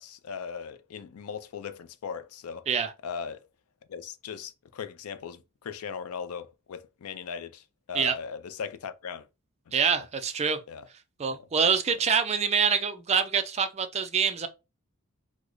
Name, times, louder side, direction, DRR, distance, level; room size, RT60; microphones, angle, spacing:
voice 1, 0.0-2.7 3.0-3.4 3.9-9.3 9.7-10.1 10.7-10.8 11.3-11.5, left 6 dB, 80° left, 0.4 m, -39 dB
voice 2, 9.7-10.6 11.2-14.5, right 6 dB, 30° right, 0.4 m, -25 dB
3.1 x 2.0 x 3.6 m
head